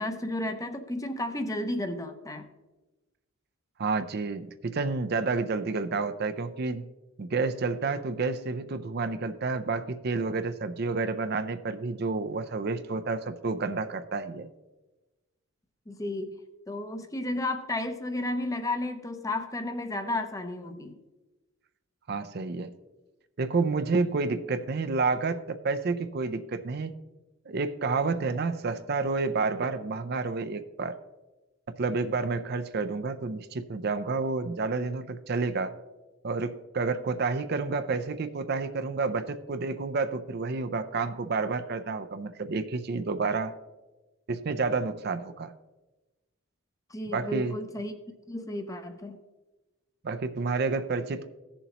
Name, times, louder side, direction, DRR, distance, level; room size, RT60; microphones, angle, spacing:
voice 1, 0.0-2.5 15.9-16.3 16.7-21.0 46.9-47.9 48.3-49.2, left 1 dB, 15° left, 7 dB, 0.6 m, -33 dB
voice 2, 3.8-6.8 7.2-14.5 22.1-22.7 23.4-26.9 27.5-31.0 31.8-35.8 36.2-43.5 44.3-45.5 47.1-47.6 50.0-51.3, right 4 dB, 50° right, 10 dB, 0.5 m, -30 dB
17.0 x 7.0 x 2.9 m, 1.1 s
head